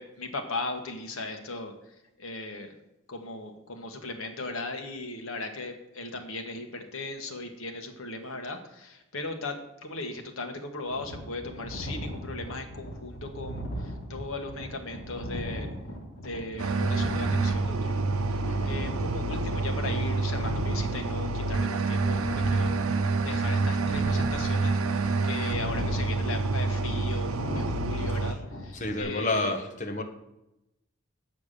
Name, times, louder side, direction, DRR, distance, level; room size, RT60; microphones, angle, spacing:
voice 1, 0.0-2.8 3.1-15.7 16.2-17.9 18.3-22.7 23.2-29.5, left 2 dB, 70° left, 5 dB, 1.5 m, -37 dB
sound 1, 10.9-29.0, equal, 55° left, 2.5 m, -38 dB
sound 2, 16.6-28.3, right 3 dB, 85° right, 0.7 m, -28 dB
voice 2, 28.7-30.0, left 2 dB, 35° left, 4 dB, 1.2 m, -30 dB
8.8 x 6.0 x 6.7 m, 0.90 s
head